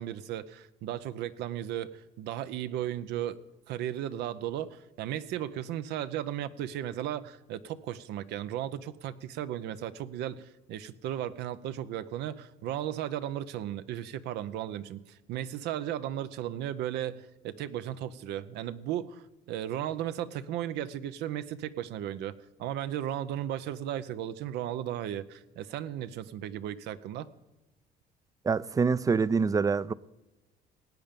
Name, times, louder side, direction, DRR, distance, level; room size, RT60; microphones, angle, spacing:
voice 1, 0.0-3.4 3.7-22.3 22.6-27.3, right 11 dB, 85° right, 0.7 m, -35 dB
voice 2, 28.4-29.9, right 5 dB, 20° right, 0.4 m, -25 dB
17.5 x 8.8 x 5.2 m
cardioid pair, 110°, 17 cm